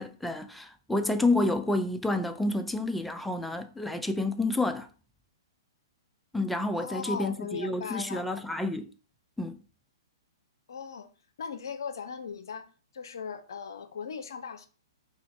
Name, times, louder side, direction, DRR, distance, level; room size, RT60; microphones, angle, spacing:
voice 1, 0.0-4.9 6.3-8.9 9.4-9.6, left 2 dB, 5° left, 0.3 m, -29 dB
voice 2, 6.7-8.3 10.7-11.1 11.4-12.7 12.9-14.7, left 6 dB, 60° left, 0.5 m, -38 dB
4.6 x 2.3 x 3.3 m
figure-of-eight pair, 115°, 2 cm